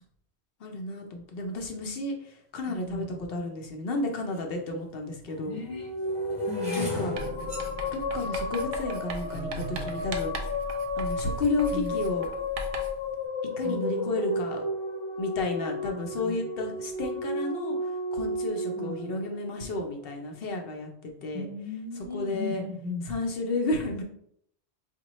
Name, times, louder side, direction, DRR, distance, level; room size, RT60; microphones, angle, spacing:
voice 1, 0.6-5.6 6.8-7.2 7.9-10.3 11.0-12.3 13.6-14.6 15.2-21.5 22.1-22.6 23.1-24.0, left 2 dB, 65° left, 3 dB, 0.8 m, -32 dB
voice 2, 2.7-3.2 5.4-5.9 6.5-7.0 11.7-12.0 13.6-14.4 15.9-16.4 18.8-19.2 21.3-23.1, left 3 dB, 45° right, -2 dB, 0.4 m, -37 dB
sound 1, 4.4-4.5 5.2-11.4 12.0-12.4 12.6-13.0, left 2 dB, 5° right, 0.9 m, -38 dB
sound 2, 5.6-20.0, left 1 dB, 35° left, 0.5 m, -33 dB
Writing, 7.2-13.1, right 2 dB, 65° right, 0.7 m, -39 dB
4.9 x 2.2 x 3.0 m, 0.69 s
omnidirectional pair, 1.1 m